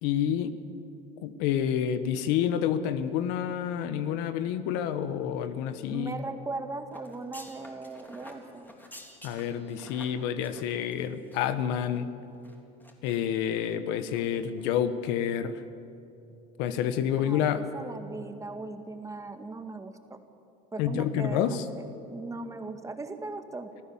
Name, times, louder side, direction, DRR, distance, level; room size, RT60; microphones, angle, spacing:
voice 1, 0.0-0.5 1.2-6.2 9.2-12.1 13.0-15.6 16.6-17.6 20.8-21.6, left 9 dB, 80° left, 12 dB, 1.2 m, -28 dB
voice 2, 5.9-8.7 17.2-20.2 20.7-21.8 22.1-23.7, right 3 dB, 15° right, 7 dB, 1.9 m, -38 dB
sound 1, 6.9-11.6 11.9-12.0 12.4-13.2 13.6-13.8 14.1-14.3 14.5-14.7, left 1 dB, 10° left, 3.5 m, -50 dB
26.0 x 14.5 x 7.3 m, 2.8 s
supercardioid pair, 95°, 18 cm